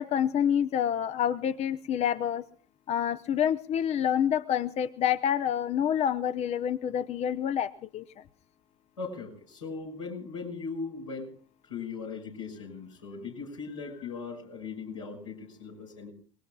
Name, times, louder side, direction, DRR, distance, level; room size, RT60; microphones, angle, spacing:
voice 1, 0.0-2.4 2.9-8.0, left 9 dB, 45° left, 13 dB, 0.8 m, -27 dB
voice 2, 9.0-11.3 11.7-16.1, left 4 dB, 85° left, -2 dB, 5.9 m, -39 dB
29.5 x 19.5 x 2.4 m, 0.42 s
figure-of-eight pair, 65°, 16 cm